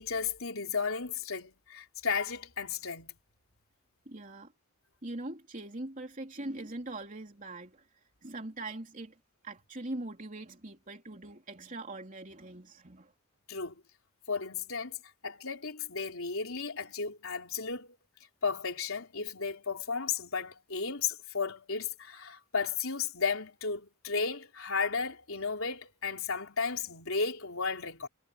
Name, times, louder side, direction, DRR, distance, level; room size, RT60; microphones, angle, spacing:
voice 1, 0.0-3.1 13.5-13.8 14.3-15.0 15.2-17.9 18.4-28.1, left 5 dB, 70° left, 4.1 m, -34 dB
voice 2, 4.0-4.5 5.0-7.8 8.2-9.1 9.4-13.1, right 2 dB, 40° right, 3.4 m, -42 dB
head